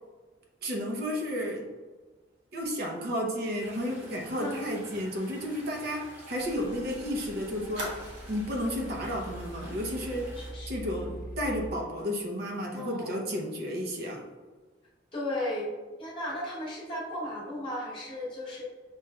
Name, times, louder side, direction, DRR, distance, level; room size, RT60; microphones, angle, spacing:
voice 1, 0.6-1.7 2.5-8.0 8.3-10.4 10.7-14.2, equal, 55° right, 0 dB, 0.6 m, -32 dB
Fire, 3.4-6.9 7.1-7.2 7.7-8.7 9.1-9.3 9.6-9.9, right 1 dB, 80° right, 1.1 m, -45 dB
sound 1, 3.6-10.5, equal, 10° right, 1.0 m, -50 dB
sound 2, 6.4-11.7, right 1 dB, 45° left, 0.5 m, -43 dB
voice 2, 10.4-10.7 12.7-13.2 15.1-15.7 16.0-18.6, left 1 dB, 25° left, -7 dB, 1.0 m, -35 dB
6.0 x 3.2 x 2.3 m, 1.3 s
head